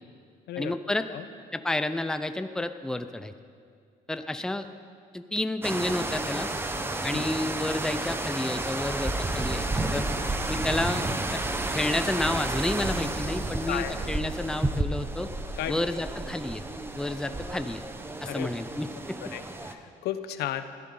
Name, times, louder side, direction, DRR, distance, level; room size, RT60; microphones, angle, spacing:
voice 1, 0.6-1.1 1.5-3.3 4.1-4.7 5.1-6.5 7.0-10.1 10.5-11.4 11.7-15.3 15.7-16.6 16.9-17.8 18.2-19.2, left 1 dB, 5° left, 9 dB, 0.6 m, -30 dB
sound 1, 5.6-19.7, right 2 dB, 15° right, 1.0 m, -31 dB
voice 2, 15.6-15.9 18.2-18.5 19.3-20.7, left 12 dB, 75° left, 10 dB, 0.9 m, -34 dB
21.5 x 14.0 x 3.9 m, 2.2 s
cardioid pair, 110°, 17 cm